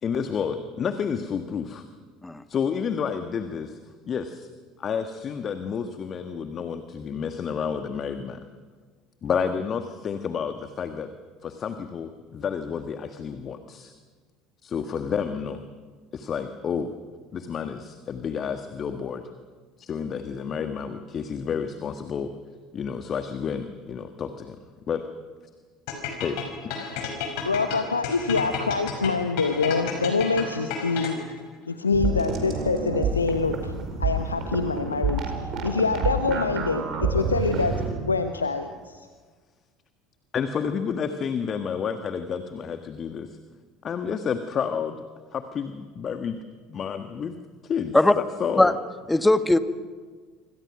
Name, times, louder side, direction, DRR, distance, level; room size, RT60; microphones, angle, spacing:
voice 1, 0.0-1.8 2.5-3.8 4.1-4.5 4.8-8.4 9.2-11.1 11.4-13.9 14.6-15.6 16.1-16.9 17.3-19.3 19.8-22.3 22.7-24.6 24.9-25.0 26.2-26.9 27.7-27.8 40.3-43.4 43.8-45.0 45.3-46.4 46.7-47.3 47.6-48.8, left 6 dB, 35° left, 8 dB, 1.5 m, -30 dB
sound 1, 25.9-31.4, left 7 dB, 60° left, 5.4 m, -32 dB
voice 2, 27.2-31.2 31.7-33.7 34.0-37.7 38.0-39.0, left 4 dB, 85° left, 8 dB, 1.0 m, -25 dB
sound 2, 31.9-37.9, right 4 dB, 45° right, 4.8 m, -28 dB
voice 3, 49.1-49.6, left 2 dB, 10° left, 11 dB, 1.5 m, -18 dB
26.0 x 26.0 x 6.1 m, 1.5 s
figure-of-eight pair, 65°, 0 cm